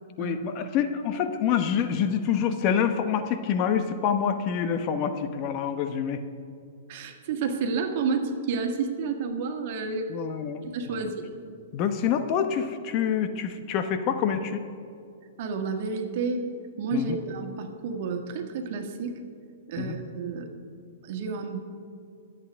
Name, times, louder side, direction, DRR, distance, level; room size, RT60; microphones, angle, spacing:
voice 1, 0.2-6.2 10.1-11.0 11.7-14.6 16.9-17.2 19.8-20.0, left 8 dB, 40° left, 8 dB, 0.9 m, -27 dB
voice 2, 6.9-10.1 10.6-11.3 15.4-16.5 16.8-19.2 19.7-20.5 21.0-21.6, right 4 dB, 55° right, 4 dB, 1.7 m, -30 dB
24.5 x 8.4 x 3.6 m, 2.4 s
hypercardioid pair, 120°, 0 cm